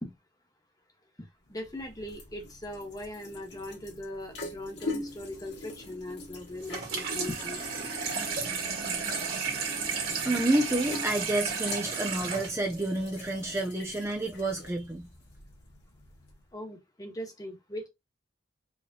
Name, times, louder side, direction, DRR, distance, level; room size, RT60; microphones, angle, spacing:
sound 1, 1.5-16.5, left 2 dB, 65° left, 2.2 m, -44 dB
voice 1, 1.5-7.7 16.5-17.9, left 1 dB, 20° left, 1.2 m, -40 dB
Water tap faucet / Sink (filling or washing), 6.6-13.6, right 5 dB, 55° right, 1.9 m, -33 dB
voice 2, 10.2-15.1, right 1 dB, 15° right, 0.5 m, -29 dB
4.8 x 3.1 x 2.7 m
head